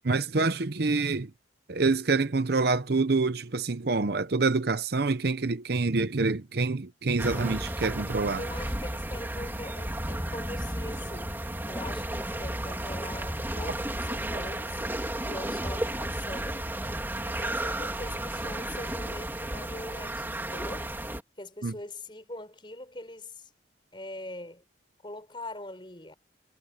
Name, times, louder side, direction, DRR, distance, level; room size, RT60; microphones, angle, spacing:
voice 1, 0.0-1.3 1.7-8.4 21.6-21.7, right 3 dB, 55° right, 0.7 m, -26 dB
sound 1, 7.2-21.2, right 1 dB, 10° right, 3.4 m, -33 dB
voice 2, 8.4-14.9 15.2-16.7 17.2-20.9 21.4-23.5 23.9-24.6 25.0-26.1, left 1 dB, 25° left, 5.3 m, -42 dB
head